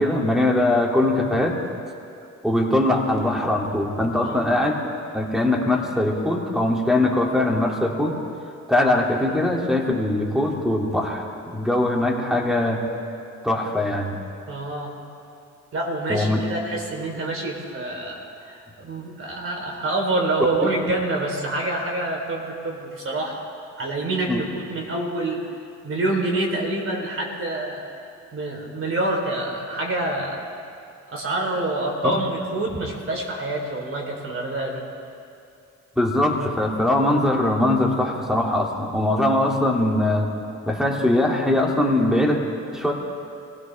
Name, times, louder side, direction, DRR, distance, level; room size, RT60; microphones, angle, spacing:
voice 1, 0.0-1.6 2.4-4.7 5.1-8.2 8.7-11.2 11.5-12.8 13.4-14.2 16.1-16.4 20.6-20.7 24.3-24.4 32.0-32.2 36.0-40.3 40.6-42.4 42.7-42.9, left 1 dB, ahead, 0 dB, 2.5 m, -21 dB
voice 2, 14.5-14.9 15.7-23.5 23.8-25.4 25.8-27.8 28.3-30.4 31.1-34.8, right 2 dB, 45° right, 0 dB, 3.6 m, -27 dB
24.5 x 16.5 x 3.4 m, 2.6 s
cardioid pair, 90°, 30 cm